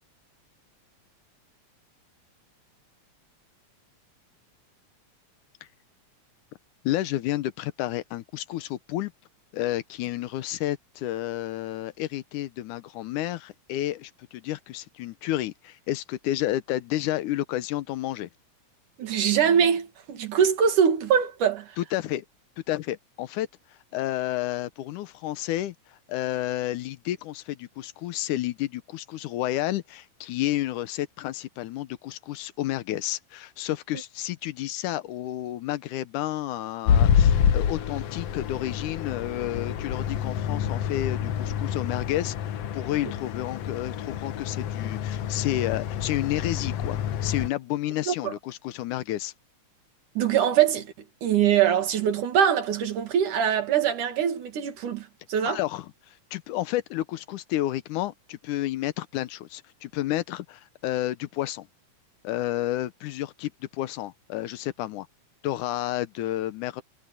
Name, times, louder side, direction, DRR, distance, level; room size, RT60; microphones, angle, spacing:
voice 1, 6.8-9.1 9.5-18.3 21.8-22.2 22.7-23.5 23.9-49.3 55.5-61.7 62.2-65.1 65.4-66.8, left 14 dB, 90° left, 2.4 m, -31 dB
voice 2, 19.0-21.7 48.1-48.3 50.2-50.9 51.2-55.6, right 8 dB, 90° right, 3.6 m, -23 dB
sound 1, 36.9-47.5, left 8 dB, 65° left, 1.9 m, -27 dB
omnidirectional pair, 3.5 m